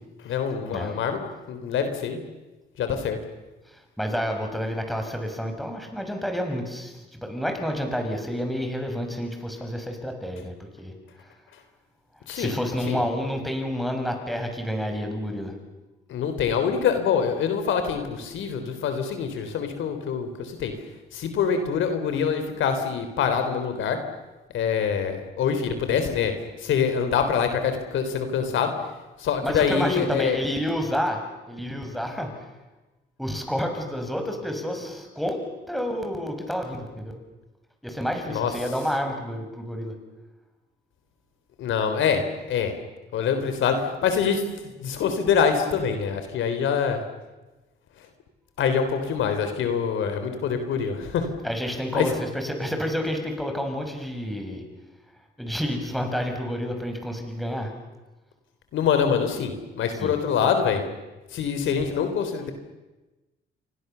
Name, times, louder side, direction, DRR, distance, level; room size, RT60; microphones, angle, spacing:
voice 1, 0.2-1.2 1.5-2.2 2.8-3.2 12.3-12.6 12.9-13.0 16.1-20.7 21.1-24.0 24.5-26.3 26.6-28.7 29.2-30.4 38.3-38.5 41.6-42.7 43.1-47.0 48.6-51.3 51.9-52.1 58.7-60.8 61.3-62.5, left 7 dB, 80° left, 8 dB, 3.8 m, -25 dB
voice 2, 4.0-10.9 12.3-15.5 29.4-31.2 31.5-32.5 33.2-35.4 35.7-37.1 37.8-39.9 51.4-54.6 55.4-57.7 59.9-60.1, equal, ahead, 4 dB, 6.2 m, -29 dB
29.0 x 24.5 x 7.0 m, 1.1 s
cardioid pair, 90°, 20 cm